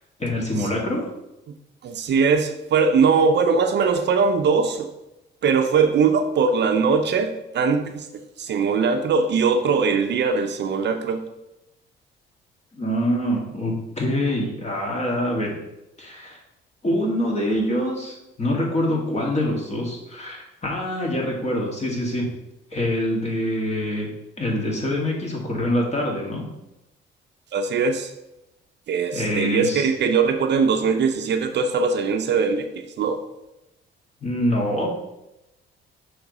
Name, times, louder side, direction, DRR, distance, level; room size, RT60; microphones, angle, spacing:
voice 1, 0.2-1.0 12.7-15.6 16.0-16.4 16.8-22.3 22.7-24.1 24.4-26.5 29.1-29.9 34.2-34.9, left 1 dB, 35° left, -2 dB, 2.0 m, -25 dB
voice 2, 1.8-4.9 5.4-7.3 7.5-8.1 8.4-11.2 27.5-28.1 28.9-32.6 33.0-33.2, right 5 dB, 60° right, 6 dB, 0.7 m, -20 dB
6.0 x 3.3 x 5.3 m, 0.91 s
cardioid pair, 90°, 20 cm